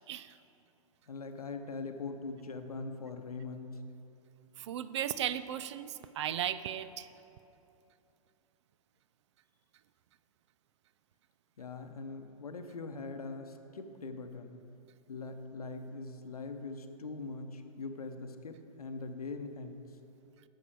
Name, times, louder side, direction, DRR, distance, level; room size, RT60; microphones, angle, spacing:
voice 1, 0.1-0.4 4.6-7.1, right 10 dB, 50° right, 14 dB, 0.4 m, -36 dB
voice 2, 1.1-3.8 11.6-14.6 15.1-19.8, left 3 dB, 80° left, 7 dB, 0.8 m, -42 dB
11.5 x 7.0 x 4.7 m, 2.9 s
figure-of-eight pair, 115°, 19 cm